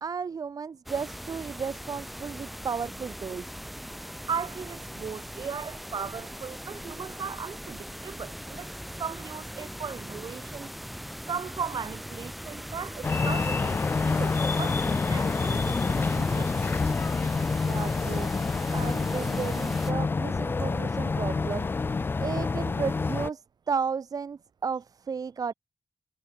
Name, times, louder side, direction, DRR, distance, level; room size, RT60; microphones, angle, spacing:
voice 1, 0.0-3.6 17.6-18.3 18.7-21.7 22.2-23.4 23.7-25.5, right 6 dB, 60° right, 0.7 m, -33 dB
sound 1, 0.9-19.9, equal, ahead, 1.8 m, -40 dB
voice 2, 4.3-8.7 9.0-10.7 11.3-16.5, right 6 dB, 90° right, 4.0 m, -37 dB
sound 2, 13.0-23.3, left 4 dB, 30° left, 0.3 m, -27 dB
wide cardioid pair, 140°, 7 cm